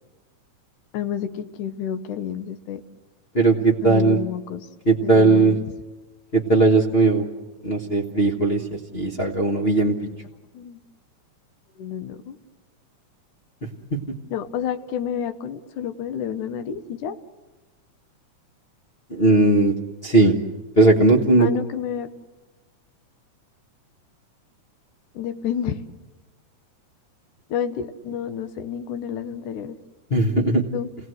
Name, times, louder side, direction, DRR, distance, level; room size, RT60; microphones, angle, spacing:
voice 1, 0.9-2.8 3.8-4.7 5.0-5.6 10.0-10.1 10.5-10.8 11.8-12.4 14.3-17.2 21.4-22.1 25.1-25.8 27.5-29.8 30.7-30.9, left 8 dB, 85° left, 10 dB, 2.5 m, -29 dB
voice 2, 3.3-4.2 4.9-5.6 6.3-7.2 7.6-9.9 19.1-19.7 20.0-20.3 20.8-21.5 30.1-30.6, right 2 dB, 50° left, -2 dB, 0.7 m, -18 dB
29.0 x 18.0 x 7.9 m, 1.2 s
omnidirectional pair, 3.5 m